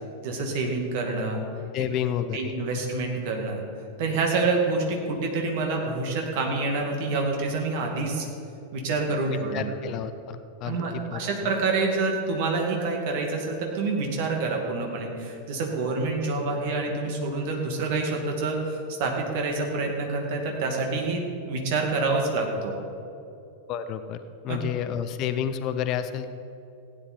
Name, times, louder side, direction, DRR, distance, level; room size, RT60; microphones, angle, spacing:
voice 1, 0.2-1.4 2.3-3.6 4.0-8.3 8.7-9.7 10.6-22.7 24.5-24.6, right 3 dB, 50° right, 1 dB, 2.2 m, -27 dB
voice 2, 1.7-2.5 9.3-11.2 23.7-26.3, left 9 dB, 40° left, 10 dB, 0.6 m, -30 dB
16.0 x 9.8 x 4.5 m, 2.8 s
figure-of-eight pair, 90°, 0 cm